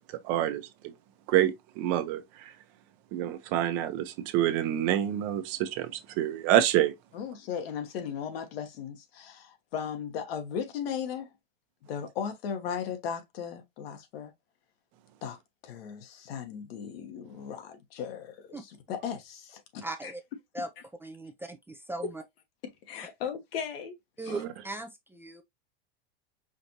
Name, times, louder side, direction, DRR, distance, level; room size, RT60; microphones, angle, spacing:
voice 1, 0.2-0.7 1.3-2.5 3.1-6.9 24.3-24.5, right 12 dB, 55° right, 0.9 m, -27 dB
voice 2, 7.1-11.3 11.9-14.3 15.2-15.4 15.6-20.1 22.9-24.0 24.2-24.3, left 7 dB, 75° left, 1.2 m, -37 dB
voice 3, 19.8-20.2 20.5-20.7 21.0-22.2 24.2-25.4, right 2 dB, 5° right, 0.5 m, -38 dB
5.1 x 2.6 x 2.9 m
hypercardioid pair, 110°, 30 cm